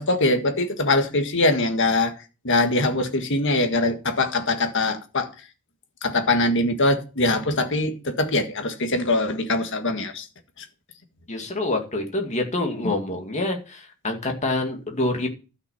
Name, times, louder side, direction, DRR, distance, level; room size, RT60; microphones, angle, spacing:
voice 1, 0.0-2.2 2.4-5.3 6.0-10.2 12.8-12.9, left 2 dB, 55° left, 1.7 m, -22 dB
voice 2, 11.3-15.3, left 2 dB, 30° left, 2.2 m, -26 dB
12.5 x 6.0 x 5.6 m
head